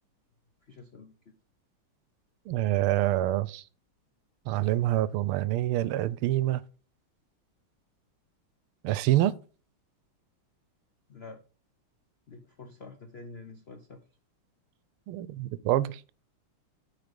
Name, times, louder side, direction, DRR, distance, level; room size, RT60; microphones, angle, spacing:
voice 1, 0.7-1.1 11.1-11.4 12.3-14.0, left 3 dB, 85° left, 0.5 m, -47 dB
voice 2, 2.5-3.6 4.5-6.6 8.8-9.3 15.1-16.0, right 14 dB, 85° right, 1.4 m, -26 dB
9.2 x 4.7 x 5.2 m
omnidirectional pair, 2.3 m